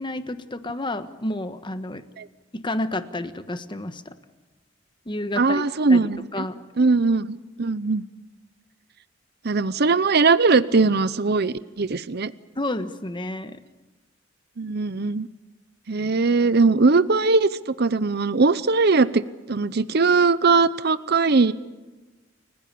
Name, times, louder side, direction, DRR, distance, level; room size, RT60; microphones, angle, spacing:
voice 1, 0.0-2.0 2.5-4.1 5.0-5.6 5.9-6.7 12.6-13.6, left 1 dB, 25° left, 10 dB, 1.3 m, -30 dB
voice 2, 5.4-6.4 6.8-8.1 9.4-12.3 14.6-15.3 15.9-21.5, right 4 dB, 55° right, 15 dB, 0.7 m, -20 dB
29.5 x 16.0 x 8.6 m, 1.2 s
head